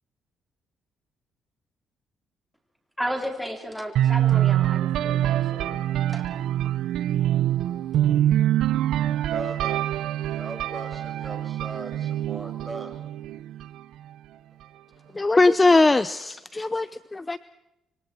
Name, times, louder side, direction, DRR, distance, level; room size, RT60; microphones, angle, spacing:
voice 1, 3.0-5.8 6.1-6.3, equal, ahead, 4 dB, 4.3 m, -33 dB
sound 1, 3.9-13.8, right 12 dB, 80° right, 0.7 m, -25 dB
voice 2, 8.4-13.0, right 2 dB, 20° right, 4 dB, 6.2 m, -40 dB
voice 3, 15.1-17.4, left 3 dB, 20° left, 15 dB, 0.7 m, -20 dB
26.0 x 24.5 x 4.6 m, 0.88 s
cardioid pair, 90°, 0 cm